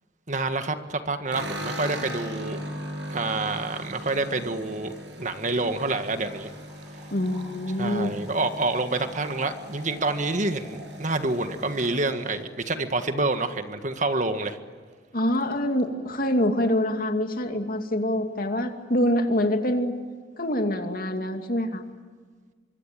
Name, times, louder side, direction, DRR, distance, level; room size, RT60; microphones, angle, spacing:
voice 1, 0.3-2.6 3.1-4.9 5.2-6.5 7.8-14.6, right 2 dB, 45° right, 8 dB, 1.7 m, -27 dB
sound 1, 1.3-13.6 13.9-14.5 14.8-14.9 15.2-15.9, equal, 75° right, 7.6 m, -39 dB
voice 2, 7.1-8.3 15.1-19.9 20.4-21.8, left 1 dB, 55° left, 5 dB, 2.5 m, -25 dB
25.5 x 24.5 x 9.2 m, 1.5 s
head